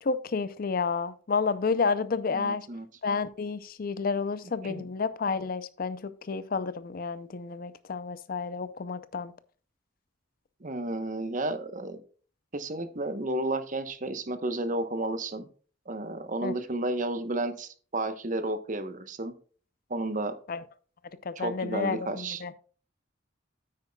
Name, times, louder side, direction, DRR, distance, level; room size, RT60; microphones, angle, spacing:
voice 1, 0.0-2.7 3.0-9.3 16.4-16.5 20.5-20.6 21.2-22.5, left 4 dB, 45° left, 0.5 m, -30 dB
voice 2, 2.3-2.9 4.6-4.9 10.6-12.0 12.5-15.5 15.9-19.4 19.9-20.3 21.4-22.4, right 2 dB, 40° right, 0.9 m, -32 dB
9.5 x 8.9 x 2.3 m
head